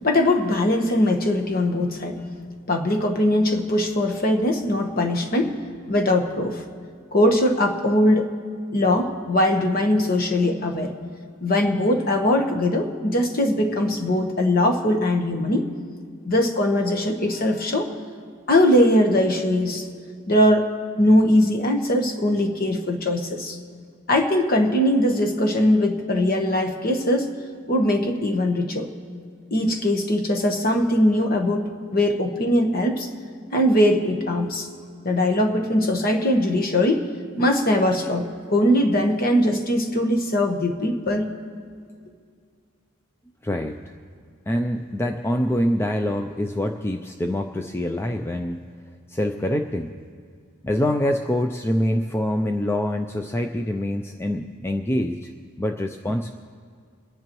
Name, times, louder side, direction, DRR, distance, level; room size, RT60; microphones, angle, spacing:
voice 1, 0.0-2.2 2.7-5.6 5.9-6.6 7.1-8.3 8.7-10.9 11.4-15.7 16.2-17.9 18.5-19.8 20.3-23.6 24.1-27.3 27.7-28.9 29.5-33.1 33.5-34.7 35.0-37.0 37.4-41.3, left 1 dB, 45° left, 3 dB, 1.2 m, -21 dB
voice 2, 43.4-43.8 44.5-48.6 49.1-49.9 50.6-55.3 55.6-56.3, left 1 dB, 10° left, 5 dB, 0.4 m, -25 dB
29.0 x 10.5 x 3.1 m, 2.1 s
head